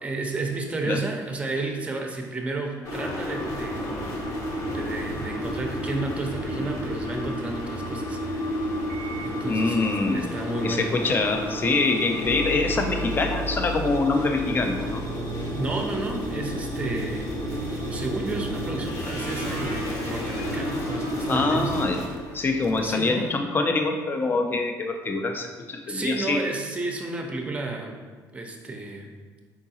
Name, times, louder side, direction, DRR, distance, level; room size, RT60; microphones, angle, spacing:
voice 1, 0.0-4.2 4.7-8.4 9.2-10.9 15.5-17.3 17.9-21.7 22.8-23.4 25.9-28.0 28.3-29.1, right 2 dB, 20° right, 2 dB, 0.6 m, -32 dB
sound 1, 2.8-22.1, equal, 55° left, 1.0 m, -31 dB
sound 2, 3.4-22.9, right 1 dB, 80° right, 0.4 m, -41 dB
voice 2, 9.4-10.3 10.6-15.0 21.3-22.0 22.3-26.4, left 3 dB, 30° left, 4 dB, 0.5 m, -25 dB
sound 3, 18.8-22.6, left 1 dB, 75° left, 1.1 m, -40 dB
4.8 x 3.6 x 2.8 m, 1.4 s
cardioid pair, 115°, 7 cm